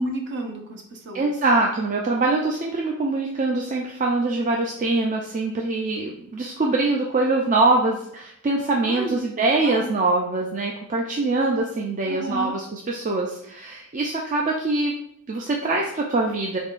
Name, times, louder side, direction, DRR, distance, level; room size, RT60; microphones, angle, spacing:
voice 1, 0.0-1.3 8.9-9.9 12.1-12.5, right 1 dB, 55° right, 2 dB, 0.8 m, -31 dB
voice 2, 1.1-15.0 15.3-16.6, right 2 dB, 35° right, 0 dB, 0.4 m, -23 dB
4.3 x 3.5 x 2.4 m, 0.73 s
head